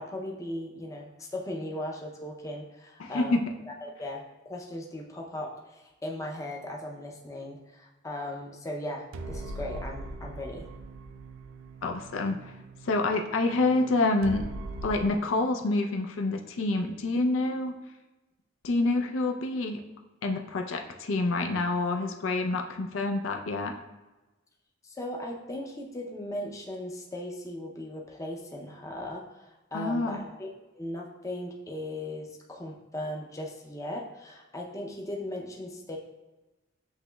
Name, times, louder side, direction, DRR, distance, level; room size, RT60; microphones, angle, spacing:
voice 1, 0.0-10.7 24.8-30.5 30.7-36.0, left 1 dB, 15° left, -1 dB, 0.5 m, -38 dB
voice 2, 3.0-3.4 11.8-12.5 12.8-14.5 14.8-17.7 18.6-19.8 20.2-23.7 29.7-30.2, left 2 dB, 80° left, 4 dB, 0.4 m, -27 dB
sound 1, 9.1-15.1, right 2 dB, 85° right, 0.4 m, -41 dB
8.1 x 3.0 x 2.2 m, 1.1 s
head